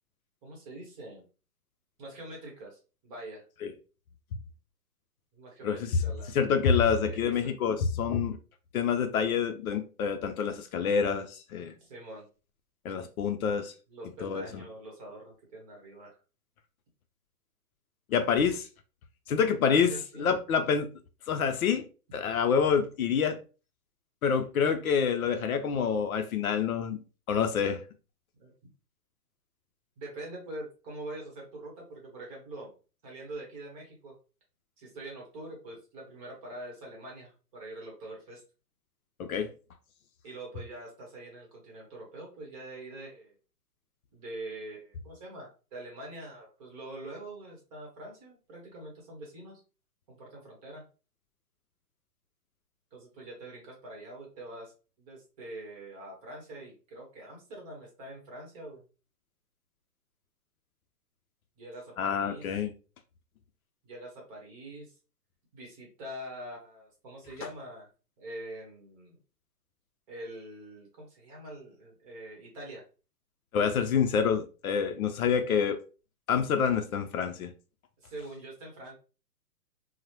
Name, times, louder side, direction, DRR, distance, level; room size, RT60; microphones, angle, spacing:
voice 1, 0.4-1.2 2.0-3.4 5.3-6.4 6.9-7.5 11.8-12.2 13.9-16.2 19.6-20.4 28.3-28.5 30.0-32.7 33.0-34.1 34.8-38.4 40.2-43.3 44.1-49.6 50.1-50.8 52.9-54.7 55.0-58.8 61.6-62.6 63.8-64.9 65.5-67.9 68.2-69.2 70.1-72.8 78.0-78.9, right 1 dB, 20° right, 0.8 m, -44 dB
voice 2, 5.6-6.0 6.3-8.4 8.7-11.7 12.8-13.7 14.2-14.6 18.1-18.7 19.3-19.9 20.2-20.9 21.3-21.9 22.1-23.4 24.2-27.0 27.3-27.8 39.2-39.5 62.0-62.7 67.4-67.5 73.5-75.8 76.3-77.5, left 6 dB, 60° left, 0.5 m, -27 dB
3.1 x 2.0 x 2.8 m
hypercardioid pair, 145°, 48 cm